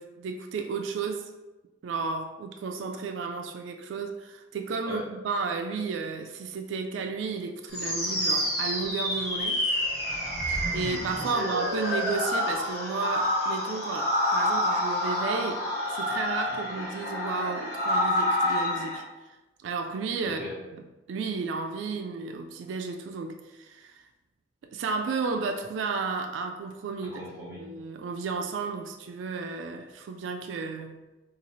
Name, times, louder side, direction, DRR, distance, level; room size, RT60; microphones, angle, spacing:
voice 1, 0.0-1.3 1.8-9.6 10.7-19.4 19.6-20.4 20.7-20.8 21.1-24.0 24.7-27.2 27.6-31.0, right 4 dB, 80° right, 4 dB, 0.3 m, -33 dB
sound 1, 7.7-19.0, left 1 dB, 55° left, 1.0 m, -28 dB
voice 2, 10.1-11.0 16.5-16.6 20.2-20.5 27.0-27.7, left 1 dB, 15° right, -6 dB, 0.9 m, -41 dB
3.9 x 2.4 x 3.0 m, 1.1 s
head